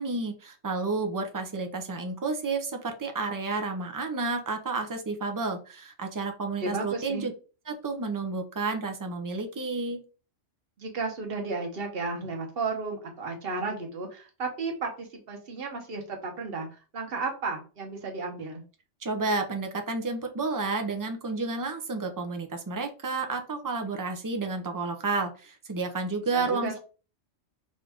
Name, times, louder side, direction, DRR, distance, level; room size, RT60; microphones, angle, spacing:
voice 1, 0.0-7.3 7.7-10.0 19.0-26.8, right 3 dB, 30° right, 5 dB, 0.4 m, -31 dB
voice 2, 6.6-7.2 10.8-16.7 16.9-18.6 26.3-26.8, right 3 dB, 50° right, 2 dB, 1.2 m, -33 dB
5.3 x 2.5 x 3.4 m, 0.36 s
omnidirectional pair, 1.3 m